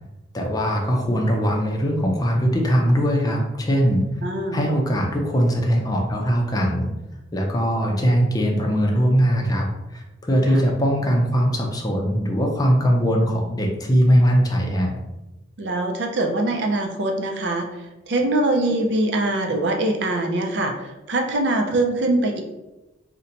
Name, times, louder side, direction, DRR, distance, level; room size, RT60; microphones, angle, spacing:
voice 1, 0.3-4.0 4.5-6.9 7.3-14.9, equal, 20° left, 0 dB, 0.5 m, -20 dB
voice 2, 4.2-4.6 10.5-10.6 15.6-17.7 18.1-22.4, right 2 dB, 65° right, 3 dB, 0.5 m, -23 dB
2.8 x 2.2 x 3.8 m, 0.99 s
head